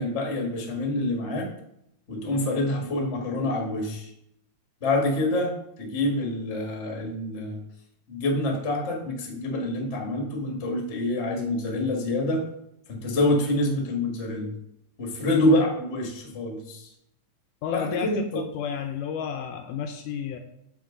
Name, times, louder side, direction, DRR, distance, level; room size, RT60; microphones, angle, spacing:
voice 1, 0.0-1.5 2.1-4.1 4.8-7.6 8.1-12.4 12.9-14.5 15.0-16.9 17.7-18.4, left 1 dB, 30° left, 1 dB, 1.2 m, -26 dB
voice 2, 17.6-20.4, left 7 dB, 80° left, 5 dB, 2.0 m, -31 dB
9.5 x 6.1 x 3.8 m, 0.77 s
omnidirectional pair, 3.9 m